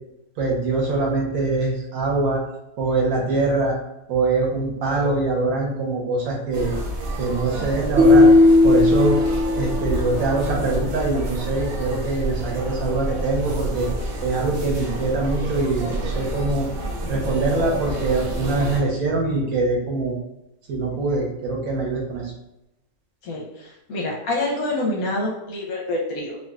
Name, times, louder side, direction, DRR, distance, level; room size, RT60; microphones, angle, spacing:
voice 1, 0.4-2.4 2.8-3.7 4.1-6.8 7.2-8.3 8.6-9.2 9.6-13.9 14.2-16.7 17.1-20.2 20.7-22.3, right 3 dB, 80° right, -2 dB, 1.2 m, -23 dB
sound 1, 6.5-18.8, right 1 dB, 60° right, 0.8 m, -29 dB
sound 2, 8.0-10.1, left 2 dB, 10° right, 0.4 m, -15 dB
voice 2, 23.2-26.4, left 2 dB, 85° left, -3 dB, 1.3 m, -27 dB
3.7 x 2.3 x 2.4 m, 0.90 s
omnidirectional pair, 1.5 m